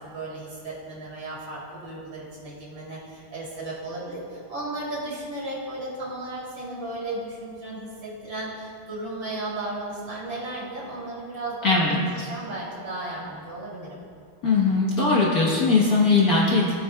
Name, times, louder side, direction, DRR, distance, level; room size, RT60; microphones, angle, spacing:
voice 1, 0.1-12.0 12.3-14.0, right 2 dB, 55° right, -7 dB, 3.7 m, -35 dB
voice 2, 11.6-12.0 14.4-16.7, left 3 dB, 50° left, -5 dB, 1.5 m, -20 dB
18.0 x 8.4 x 2.3 m, 2.4 s
omnidirectional pair, 2.4 m